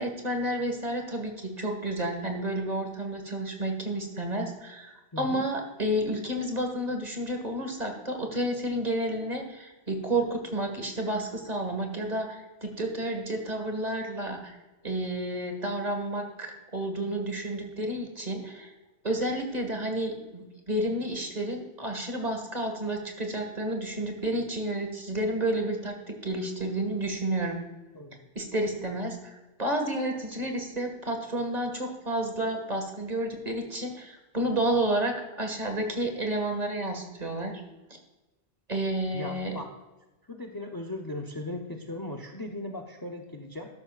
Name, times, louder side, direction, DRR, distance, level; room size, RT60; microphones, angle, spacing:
voice 1, 0.0-14.6 14.8-18.7 19.0-27.6 28.4-37.5 38.7-39.5, right 1 dB, 40° right, 3 dB, 1.9 m, -31 dB
voice 2, 5.1-5.4 27.9-28.3 39.1-39.7 40.3-43.7, left 2 dB, 25° left, 5 dB, 0.7 m, -38 dB
13.0 x 11.5 x 2.4 m, 1.1 s
omnidirectional pair, 1.1 m